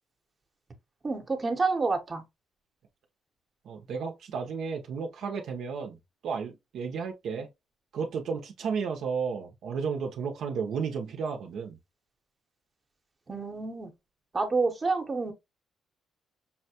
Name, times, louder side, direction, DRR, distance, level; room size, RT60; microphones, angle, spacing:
voice 1, 1.0-2.2 13.3-13.9 14.3-15.3, right 3 dB, 30° right, 0.8 m, -28 dB
voice 2, 3.6-6.0 6.2-7.5 7.9-11.8, right 5 dB, 75° right, 0.6 m, -33 dB
5.6 x 2.2 x 2.8 m
cardioid pair, 90°, 0 cm